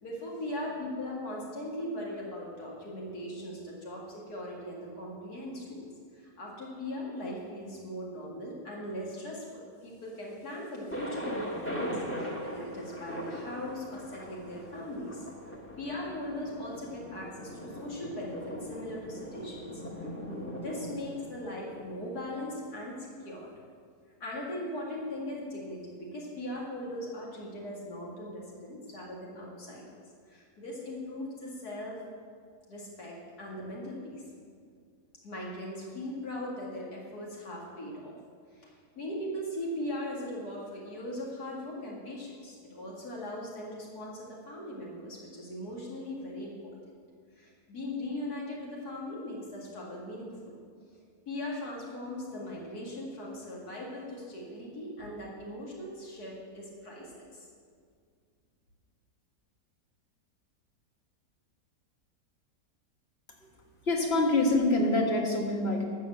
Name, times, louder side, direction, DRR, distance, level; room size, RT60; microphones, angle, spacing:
voice 1, 0.0-5.9 6.1-23.5 24.2-30.0 30.3-32.0 32.7-34.2 35.2-38.2 38.5-46.9 47.3-50.6 51.3-57.5, left 1 dB, 80° left, -4 dB, 2.6 m, -39 dB
Thunder, 10.9-22.7, equal, 10° left, 1.1 m, -40 dB
voice 2, 63.9-65.8, left 2 dB, 40° left, 1 dB, 1.9 m, -25 dB
12.5 x 6.6 x 7.7 m, 2.1 s
omnidirectional pair, 1.7 m